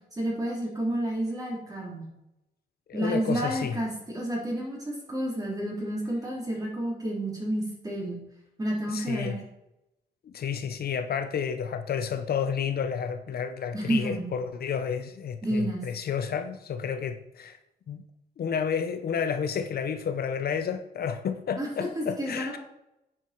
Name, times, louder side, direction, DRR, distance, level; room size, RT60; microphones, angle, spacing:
voice 1, 0.1-2.1 2.9-8.2 8.6-9.4 13.7-14.3 15.4-15.9 21.6-22.6, right 1 dB, 20° right, -3 dB, 3.8 m, -30 dB
voice 2, 2.9-3.8 8.9-9.4 10.3-17.6 17.9-18.0 18.4-22.6, left 7 dB, 65° left, 8 dB, 0.7 m, -31 dB
9.5 x 7.8 x 4.5 m, 0.89 s
wide cardioid pair, 125°, 17 cm